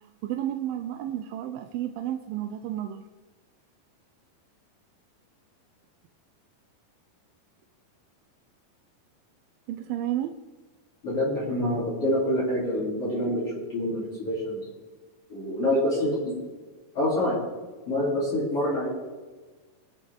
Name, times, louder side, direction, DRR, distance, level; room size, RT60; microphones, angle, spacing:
voice 1, 0.2-3.0 9.7-10.4, right 12 dB, 85° right, 7 dB, 2.4 m, -31 dB
voice 2, 11.0-13.4 13.7-14.6 15.3-16.3 16.9-17.4 17.9-18.9, left 1 dB, 40° left, -8 dB, 4.0 m, -26 dB
22.0 x 8.6 x 3.6 m, 1.3 s
omnidirectional pair, 4.1 m